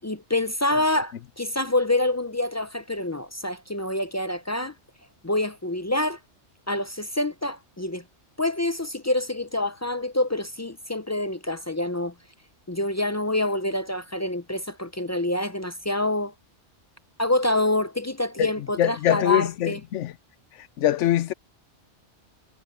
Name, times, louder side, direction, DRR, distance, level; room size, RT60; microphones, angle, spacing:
voice 1, 0.0-4.7 5.2-6.2 6.7-8.0 8.4-12.1 12.7-16.3 17.2-19.8, left 1 dB, 25° left, 0.3 m, -26 dB
voice 2, 18.8-20.1 20.6-21.3, left 12 dB, 85° left, 1.0 m, -23 dB
omnidirectional pair, 1.2 m